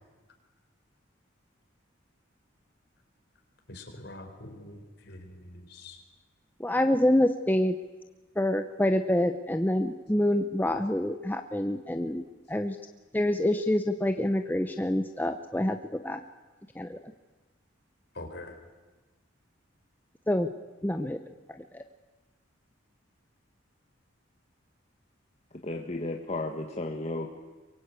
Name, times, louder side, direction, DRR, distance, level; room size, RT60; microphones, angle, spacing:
voice 1, 3.7-6.0 18.1-18.6, left 2 dB, 55° left, 4 dB, 4.5 m, -44 dB
voice 2, 6.6-7.7 8.4-12.2 12.5-12.8 13.1-15.8 16.0-16.2 16.8-17.0 20.3-20.5 20.8-21.2 21.7-21.8, left 1 dB, 10° left, 7 dB, 0.8 m, -26 dB
voice 3, 25.5-27.3, left 2 dB, 35° left, 2 dB, 1.5 m, -34 dB
24.0 x 22.5 x 8.3 m, 1.2 s
head